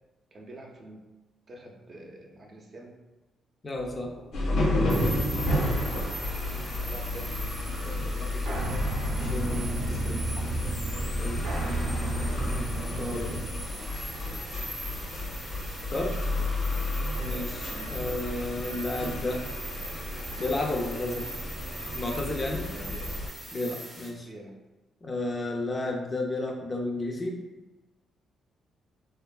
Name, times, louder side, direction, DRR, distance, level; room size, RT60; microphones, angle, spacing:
voice 1, 0.3-1.0 1.5-3.0 6.8-7.4 7.8-8.9 13.5-13.8 14.2-14.5 15.9-16.6 17.7-18.0 22.7-23.2 24.2-24.6, right 1 dB, 40° right, 0 dB, 0.4 m, -46 dB
voice 2, 3.6-4.1 9.3-10.5 11.2-11.4 13.0-13.4 15.9-16.1 17.2-19.4 20.4-21.3 21.9-22.7 23.5-24.3 25.0-27.4, left 2 dB, 30° left, 1 dB, 0.4 m, -32 dB
sound 1, 3.8-13.5, right 1 dB, 80° right, 0.6 m, -34 dB
sound 2, 4.3-23.3, left 1 dB, 80° left, 0.5 m, -32 dB
sound 3, 4.9-24.1, right 1 dB, 15° right, 0.7 m, -42 dB
2.7 x 2.3 x 2.2 m, 1.1 s
cardioid pair, 90°, 0 cm